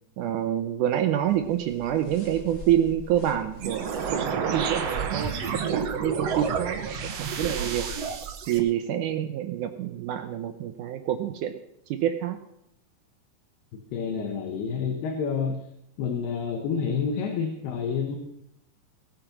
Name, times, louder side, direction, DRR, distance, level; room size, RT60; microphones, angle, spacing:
voice 1, 0.2-5.3 5.7-7.9 8.5-11.5 11.9-12.4, right 11 dB, 80° right, 8 dB, 1.8 m, -27 dB
sound 1, 1.3-8.2, left 2 dB, 50° left, 0.9 m, -44 dB
sound 2, 3.6-8.6, right 6 dB, 65° right, 1.6 m, -30 dB
voice 2, 13.9-15.6 16.0-18.2, left 6 dB, 90° left, 3 dB, 3.3 m, -28 dB
18.5 x 8.9 x 6.0 m, 0.80 s
omnidirectional pair, 4.5 m